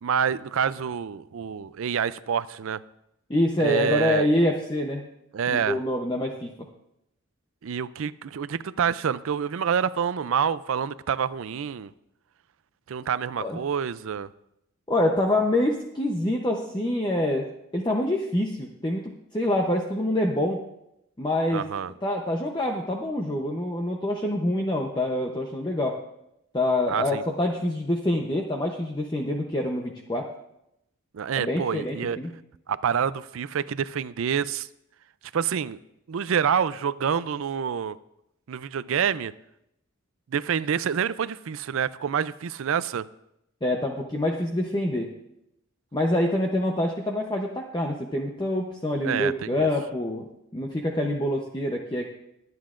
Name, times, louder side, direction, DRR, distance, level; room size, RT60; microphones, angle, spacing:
voice 1, 0.0-2.8 3.6-4.3 5.3-5.8 7.6-11.9 12.9-14.3 21.5-21.9 26.9-27.2 31.1-32.2 32.7-34.7 35.3-35.8 36.1-38.0 38.5-39.3 40.3-43.0 49.0-49.7, right 7 dB, 70° right, 16 dB, 0.4 m, -27 dB
voice 2, 3.3-5.0 5.5-6.5 13.4-13.6 14.9-17.5 17.7-20.6 21.2-21.6 22.0-26.0 26.5-30.3 31.3-32.3 43.6-45.1 45.9-50.3 50.5-52.1, left 1 dB, 20° left, 1 dB, 0.7 m, -26 dB
22.0 x 9.4 x 2.5 m, 0.83 s
head